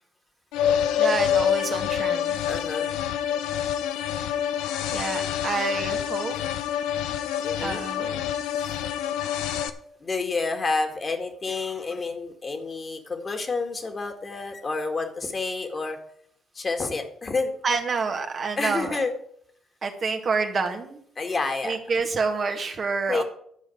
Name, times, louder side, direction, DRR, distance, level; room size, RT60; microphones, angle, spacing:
sound 1, 0.5-9.7, left 9 dB, 80° left, 0.7 m, -26 dB
voice 1, 1.0-2.4 4.9-6.4 7.6-8.2 17.6-19.0 19.8-21.0 21.6-23.2, right 4 dB, 50° right, 4 dB, 1.8 m, -28 dB
voice 2, 2.5-2.9 7.4-7.8 8.6-8.7 10.0-16.0 16.6-17.5 18.6-19.1 21.2-21.7 23.1-23.2, left 3 dB, 40° left, 5 dB, 2.0 m, -29 dB
11.5 x 5.1 x 7.9 m, 0.66 s
hypercardioid pair, 55°, 0 cm